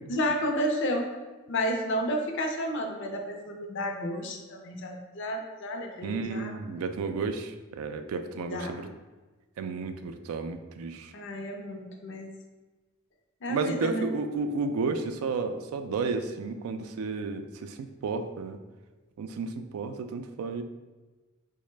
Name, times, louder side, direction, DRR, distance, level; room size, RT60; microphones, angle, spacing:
voice 1, 0.1-1.1 1.5-6.5 8.5-8.8 11.1-12.3 13.4-14.1, equal, 60° left, 3 dB, 0.5 m, -31 dB
voice 2, 6.0-8.9 9.6-11.1 13.5-18.6 19.2-20.6, right 4 dB, 90° right, 8 dB, 0.3 m, -32 dB
3.9 x 2.1 x 3.2 m, 1.2 s
head